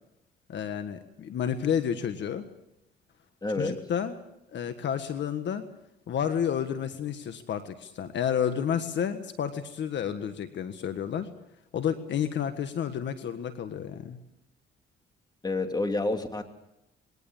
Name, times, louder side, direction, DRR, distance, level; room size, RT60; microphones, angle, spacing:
voice 1, 0.5-2.4 3.6-4.1 4.5-5.7 6.1-11.3 11.7-14.2, left 8 dB, 65° left, 9 dB, 1.6 m, -30 dB
voice 2, 3.4-3.8 15.4-16.4, left 2 dB, 20° left, 6 dB, 2.8 m, -28 dB
22.0 x 18.0 x 7.3 m, 0.87 s
cardioid pair, 90°, 20 cm